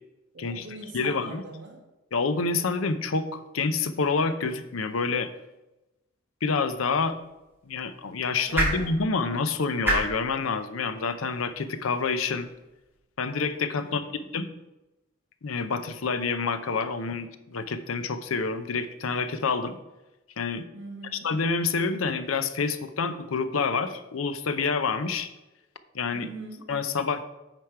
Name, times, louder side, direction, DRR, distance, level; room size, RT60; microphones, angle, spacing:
voice 1, 0.3-1.8 8.5-9.0 9.5-9.6 13.8-14.3 20.7-21.3 26.1-26.7, right 2 dB, 60° right, -3 dB, 1.5 m, -43 dB
voice 2, 0.9-1.4 2.1-5.3 6.4-7.2 7.7-12.5 13.2-14.0 14.3-14.5 15.4-19.8 20.4-20.6 21.2-25.3 25.9-26.3 26.7-27.2, left 4 dB, 90° left, 11 dB, 0.6 m, -28 dB
sound 1, 6.7-13.0, right 2 dB, 10° right, 1.9 m, -34 dB
9.0 x 5.1 x 4.6 m, 1.0 s
head